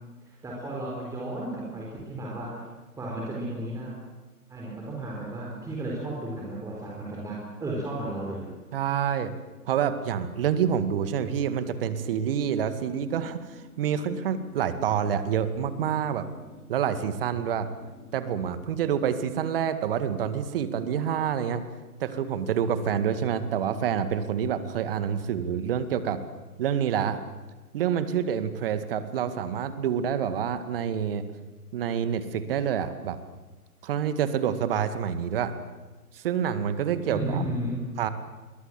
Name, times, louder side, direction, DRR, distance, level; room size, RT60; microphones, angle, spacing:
voice 1, 0.4-2.6 3.0-3.9 4.5-8.5 37.1-37.8, right 1 dB, 5° right, -3 dB, 4.3 m, -33 dB
voice 2, 8.7-9.3 9.7-16.3 16.7-17.7 18.1-21.6 22.0-26.2 26.6-27.2 27.7-31.2 31.7-33.2 33.8-35.5 36.1-37.4 38.0-38.1, right 8 dB, 35° right, 11 dB, 2.1 m, -27 dB
sound 1, 11.6-18.3, left 3 dB, 15° left, 4.4 m, -50 dB
30.0 x 23.0 x 7.7 m, 1.2 s
figure-of-eight pair, 135°, 46 cm